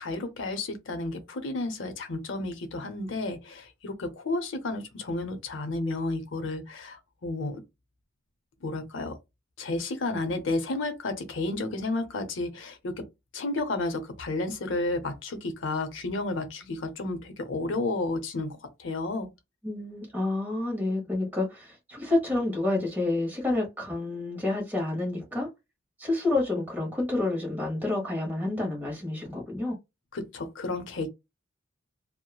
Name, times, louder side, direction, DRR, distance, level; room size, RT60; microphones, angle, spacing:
voice 1, 0.0-7.6 8.6-9.2 9.6-13.0 13.3-19.3 30.1-31.1, left 2 dB, 70° left, 0.7 m, -32 dB
voice 2, 19.6-25.5 26.0-29.8, left 2 dB, 10° right, 0.9 m, -29 dB
3.0 x 2.1 x 2.3 m
head